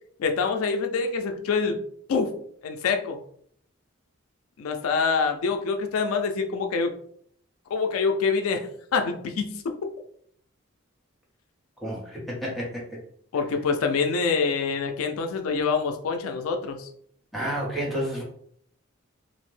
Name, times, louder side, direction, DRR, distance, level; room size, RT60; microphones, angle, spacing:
voice 1, 0.2-1.8 2.1-2.3 2.6-3.2 4.6-6.9 7.7-9.7 13.3-16.9, left 5 dB, 90° left, 5 dB, 0.4 m, -26 dB
voice 2, 11.8-13.0 17.3-18.2, equal, ahead, -4 dB, 0.7 m, -30 dB
2.5 x 2.0 x 3.1 m, 0.64 s
head